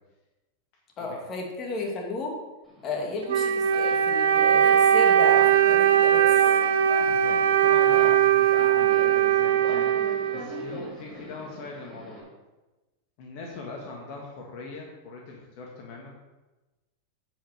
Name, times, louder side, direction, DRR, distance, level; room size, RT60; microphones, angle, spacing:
voice 1, 1.0-2.4 2.8-6.3, left 2 dB, 35° left, 0 dB, 2.5 m, -33 dB
Subway metro underground, 2.6-12.2, equal, ahead, 3.9 m, -42 dB
Wind instrument woodwind instrument, 3.3-10.8, right 9 dB, 80° right, 0.8 m, -20 dB
voice 2, 7.0-12.3 13.2-16.1, left 3 dB, 55° left, -1 dB, 1.9 m, -41 dB
9.8 x 5.6 x 6.6 m, 1.1 s
hypercardioid pair, 115°, 0 cm